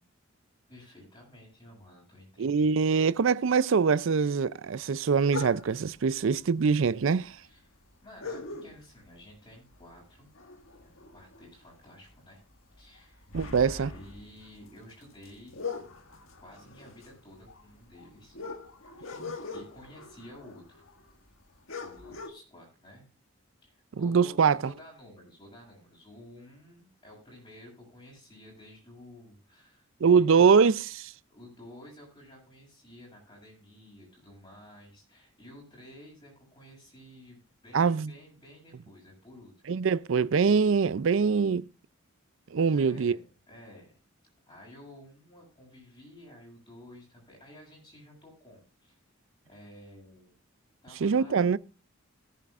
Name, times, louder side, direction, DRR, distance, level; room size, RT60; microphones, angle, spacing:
voice 1, 0.7-2.8 7.4-10.3 10.8-12.4 12.7-13.3 13.6-15.6 16.4-18.4 19.0-19.2 19.5-20.8 21.8-23.0 23.6-30.6 31.3-39.5 42.7-44.0 44.5-49.0 49.5-50.4 50.8-51.5, left 1 dB, 25° left, 7.5 m, -52 dB
voice 2, 2.4-7.4 13.3-13.9 19.2-19.4 24.0-24.6 30.0-31.1 37.7-38.1 39.7-41.7 42.5-43.2 51.0-51.6, right 5 dB, 65° right, 0.4 m, -23 dB
sound 1, 5.3-5.9 6.9-7.0 7.2-7.3 8.2-9.1 9.5-9.8 10.1-11.7 12.1-12.3 12.7-21.1 21.4-21.5 21.7-22.3, left 4 dB, 75° left, 1.7 m, -41 dB
18.5 x 10.0 x 2.4 m
head